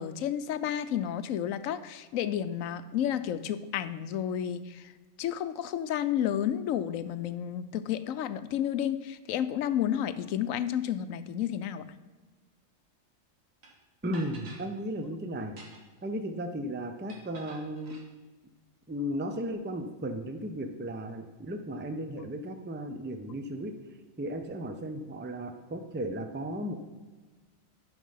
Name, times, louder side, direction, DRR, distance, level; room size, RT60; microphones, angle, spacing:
voice 1, 0.0-4.9 5.2-11.9, left 10 dB, 90° left, 12 dB, 1.0 m, -31 dB
sound 1, 13.6-13.7 14.1-14.7 15.4-16.0 17.1-18.1, right 2 dB, 80° right, 2.0 m, -49 dB
voice 2, 14.0-15.6 16.0-17.9 18.9-23.8 24.2-26.8, equal, 15° right, 6 dB, 0.5 m, -35 dB
11.0 x 5.5 x 5.6 m, 1.3 s
omnidirectional pair, 1.4 m